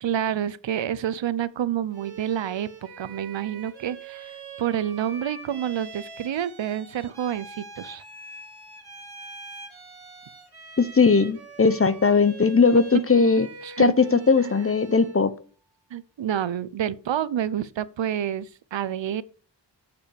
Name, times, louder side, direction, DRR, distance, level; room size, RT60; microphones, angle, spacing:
voice 1, 0.0-2.7 3.0-8.0 12.7-12.8 13.6-13.9 14.4-14.5 15.9-19.2, right 10 dB, 80° right, 0.7 m, -28 dB
Bowed string instrument, 1.9-15.3, right 4 dB, 60° right, 2.3 m, -43 dB
voice 2, 10.8-13.5 13.8-15.3, left 4 dB, 30° left, 0.7 m, -19 dB
7.0 x 6.8 x 5.0 m
wide cardioid pair, 95°, 44 cm